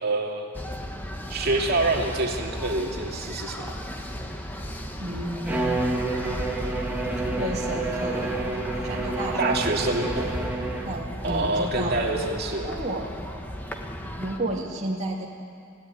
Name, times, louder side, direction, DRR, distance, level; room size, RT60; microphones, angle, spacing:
voice 1, 0.0-0.5 1.3-3.7 9.4-10.4 11.2-12.7, right 2 dB, 50° right, 0 dB, 2.7 m, -26 dB
sound 1, 0.5-14.4, equal, 10° left, 1.6 m, -35 dB
voice 2, 5.0-5.9 7.4-8.4 8.7-10.4 10.8-12.1 12.6-13.1 14.2-15.3, right 1 dB, 30° right, -4 dB, 2.4 m, -32 dB
Bowed string instrument, 5.4-11.1, right 2 dB, 10° right, 2.9 m, -29 dB
28.0 x 16.5 x 9.8 m, 2.3 s
head